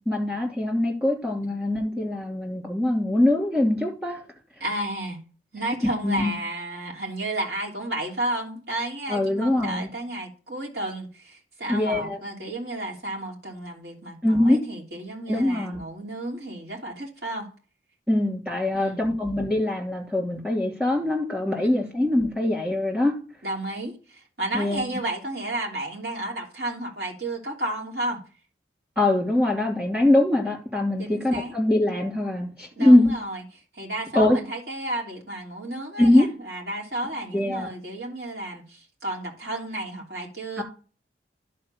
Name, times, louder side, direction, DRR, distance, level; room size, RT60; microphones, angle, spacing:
voice 1, 0.1-4.2 6.0-6.3 9.1-9.9 11.7-12.2 14.2-14.6 15.3-15.8 18.1-23.2 24.5-24.8 29.0-33.1 34.1-34.4 36.0-36.3 37.3-37.7 40.6-40.7, left 1 dB, 10° right, 2.7 m, -22 dB
voice 2, 4.6-5.2 5.5-17.5 18.7-19.1 21.6-21.9 23.4-28.2 31.0-31.5 32.8-33.4 33.7-40.6, right 1 dB, 65° right, 3.1 m, -32 dB
11.0 x 4.4 x 6.7 m
head